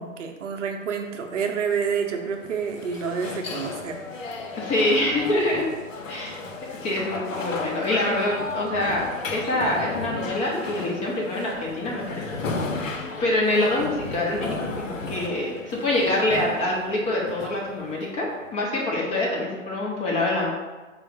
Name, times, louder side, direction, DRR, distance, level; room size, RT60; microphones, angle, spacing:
voice 1, 0.0-4.0, right 6 dB, 65° right, 4 dB, 0.7 m, -28 dB
sound 1, 1.5-18.5, left 3 dB, 75° left, 0.7 m, -35 dB
voice 2, 4.6-5.7 6.1-6.4 6.8-12.3 12.9-20.5, left 1 dB, 15° left, -3 dB, 0.5 m, -25 dB
4.5 x 2.1 x 4.5 m, 1.3 s
figure-of-eight pair, 115°, 39 cm